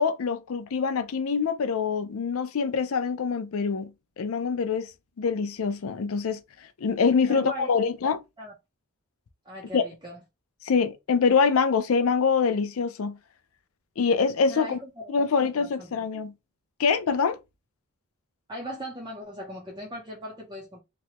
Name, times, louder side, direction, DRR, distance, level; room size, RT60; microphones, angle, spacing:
voice 1, 0.0-4.9 5.2-6.4 6.8-8.2 9.7-9.8 10.6-13.2 14.0-14.8 15.1-16.3 16.8-17.4, left 5 dB, 80° left, 0.4 m, -25 dB
voice 2, 7.3-7.9 8.4-8.5 9.4-10.2 14.5-16.0 18.5-20.8, equal, 20° right, 0.7 m, -39 dB
3.0 x 2.2 x 2.8 m
head